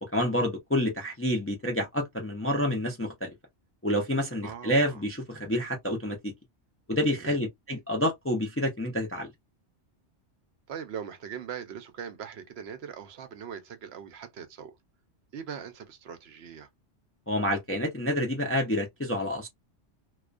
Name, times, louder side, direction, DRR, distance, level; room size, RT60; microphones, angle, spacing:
voice 1, 0.0-3.3 3.8-6.3 6.9-9.3 17.3-19.5, left 1 dB, 20° left, 0.3 m, -28 dB
voice 2, 4.4-5.0 7.2-7.4 10.7-14.7 15.3-16.7, right 7 dB, 70° right, 0.8 m, -41 dB
2.3 x 2.1 x 2.4 m
omnidirectional pair, 1.2 m